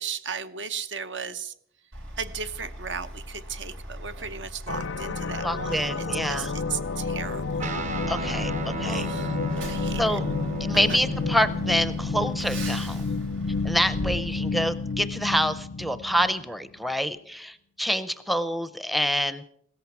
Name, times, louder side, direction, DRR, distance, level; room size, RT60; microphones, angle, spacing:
voice 1, 0.0-1.5 2.2-7.7 8.8-9.4 9.7-10.2 10.7-11.0, right 6 dB, 70° right, 11 dB, 0.8 m, -35 dB
Truck, 1.9-15.0, equal, 90° right, 3.2 m, -40 dB
sound 1, 4.7-16.4, left 4 dB, 90° left, 0.5 m, -30 dB
voice 2, 5.4-6.5 8.1-9.1 10.0-10.2 10.6-13.0 13.6-19.4, equal, ahead, 13 dB, 0.5 m, -27 dB
Guitar, 7.6-15.2, right 1 dB, 40° right, 0.8 m, -36 dB
16.5 x 14.0 x 6.0 m, 0.67 s
head